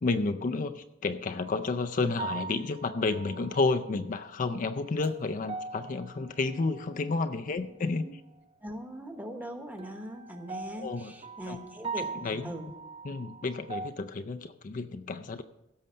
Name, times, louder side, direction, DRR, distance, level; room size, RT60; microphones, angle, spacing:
voice 1, 0.0-8.0 10.8-11.1 11.5-11.6 12.2-12.5 13.0-15.4, left 3 dB, 40° left, 7 dB, 0.4 m, -31 dB
sound 1, 1.4-1.7 2.2-4.0 4.5-7.4 9.8-13.9, right 4 dB, 30° right, 0.4 m, -41 dB
voice 2, 8.6-12.7, equal, 10° right, 5 dB, 1.0 m, -41 dB
16.0 x 6.5 x 5.6 m, 0.97 s
head